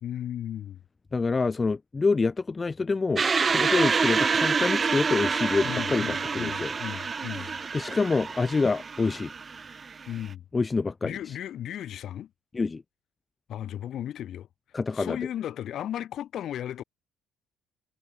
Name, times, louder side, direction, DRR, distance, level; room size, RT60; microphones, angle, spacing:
voice 1, 0.0-0.8 5.6-7.6 10.1-10.4 11.0-12.3 13.5-14.5 14.9-16.8, left 11 dB, 50° left, 2.8 m, -35 dB
voice 2, 1.1-3.2 3.5-6.7 7.7-9.3 10.5-11.3 12.5-12.8 14.7-15.2, left 4 dB, 15° left, 0.6 m, -26 dB
sound 1, 3.2-10.3, right 5 dB, 20° right, 0.7 m, -27 dB
cardioid pair, 170°, 0 cm